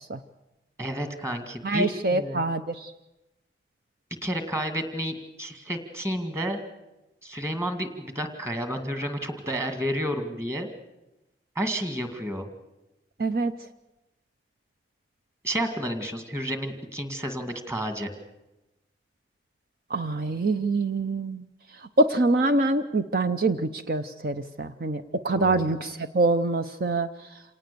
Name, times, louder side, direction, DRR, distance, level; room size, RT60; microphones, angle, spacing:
voice 1, 0.8-2.4 4.2-6.6 7.2-10.7 11.6-12.5 15.4-18.1 25.3-25.7, equal, 15° right, 7 dB, 2.2 m, -31 dB
voice 2, 1.6-2.9 13.2-13.5 19.9-21.4 22.0-27.1, right 2 dB, 55° right, 9 dB, 0.7 m, -25 dB
27.5 x 18.5 x 6.9 m, 0.98 s
head